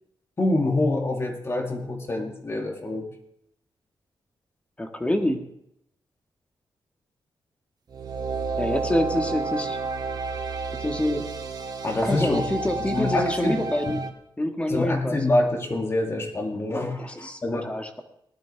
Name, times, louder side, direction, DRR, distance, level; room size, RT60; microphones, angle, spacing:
voice 1, 0.4-3.1 11.8-13.6 13.9-14.0 14.7-17.7, left 2 dB, 30° left, 2 dB, 2.4 m, -26 dB
voice 2, 4.8-5.4 8.6-9.8 10.8-11.2 12.0-14.0 14.4-15.2 17.0-18.0, left 1 dB, 15° left, 3 dB, 1.6 m, -26 dB
sound 1, 7.9-14.1, right 4 dB, 50° right, 1.2 m, -31 dB
18.5 x 12.0 x 3.4 m, 0.75 s
wide cardioid pair, 125°, 9 cm